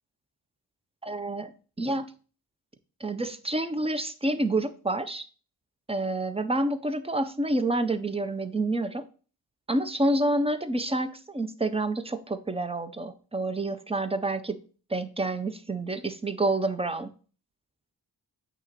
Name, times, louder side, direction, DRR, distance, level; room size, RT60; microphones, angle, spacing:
voice 1, 1.0-2.1 3.0-5.3 5.9-9.1 9.7-14.6 14.9-17.1, right 2 dB, 15° right, 11 dB, 0.4 m, -28 dB
8.4 x 3.0 x 5.7 m, 0.38 s
wide cardioid pair, 150°, 42 cm